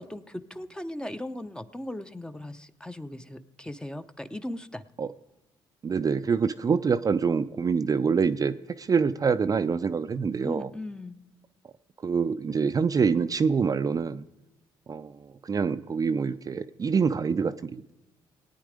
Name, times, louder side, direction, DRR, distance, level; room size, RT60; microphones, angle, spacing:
voice 1, 0.0-4.9 10.4-11.2, left 1 dB, 10° left, 11 dB, 0.7 m, -38 dB
voice 2, 5.8-10.7 12.0-14.2 14.9-17.9, right 5 dB, 35° right, 10 dB, 0.5 m, -26 dB
17.5 x 9.1 x 5.0 m, 1.0 s
supercardioid pair, 60°, 11 cm